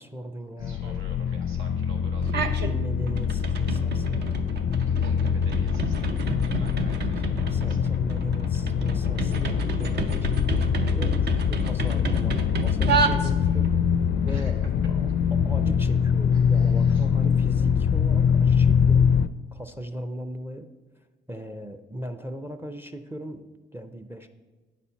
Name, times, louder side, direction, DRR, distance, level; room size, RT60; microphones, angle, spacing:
voice 1, 0.0-1.0 2.3-4.4 7.0-13.7 14.2-14.6 14.9-19.1 19.5-20.7 21.3-24.3, equal, 10° right, 7 dB, 0.5 m, -38 dB
sound 1, 0.6-19.3, left 7 dB, 60° left, 0.4 m, -23 dB
voice 2, 0.6-2.4 4.8-7.9 14.3-14.7 16.3-17.1, right 2 dB, 85° right, 2 dB, 1.5 m, -48 dB
sound 2, 2.2-2.7 3.1-13.7, right 5 dB, 55° right, 0.7 m, -31 dB
9.5 x 4.2 x 5.7 m, 1.3 s
cardioid pair, 90°, 20 cm